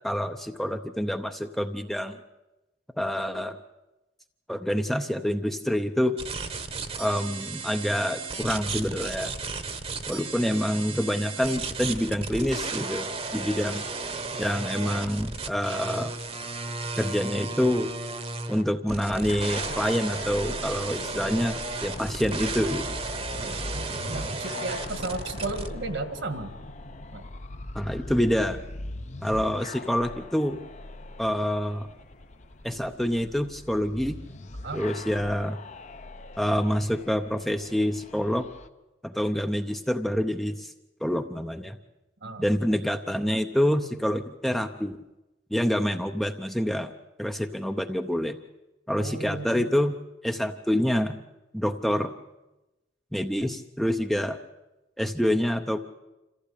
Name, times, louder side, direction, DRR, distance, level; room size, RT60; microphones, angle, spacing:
voice 1, 0.0-2.2 3.0-3.6 4.5-6.2 7.0-9.3 10.1-13.8 14.4-16.1 16.9-17.9 18.5-23.0 27.7-28.6 29.2-30.6 31.2-31.9 32.6-34.2 34.7-35.6 36.4-38.5 39.0-40.7 41.0-41.8 42.4-45.0 45.5-46.9 47.2-48.4 48.9-50.0 50.2-51.2 51.5-52.1 53.1-54.4 55.0-55.8, equal, ahead, 6 dB, 0.7 m, -27 dB
sound 1, 6.2-25.7, right 3 dB, 30° right, 1.2 m, -34 dB
sound 2, 19.3-38.7, left 2 dB, 40° left, 0.8 m, -41 dB
sound 3, 20.3-38.2, left 1 dB, 55° left, 1.4 m, -52 dB
voice 2, 23.3-26.5 27.1-27.3 34.6-34.8 42.2-42.6 49.0-49.7, right 2 dB, 65° right, 9 dB, 1.9 m, -35 dB
26.5 x 15.0 x 8.5 m, 1.0 s
head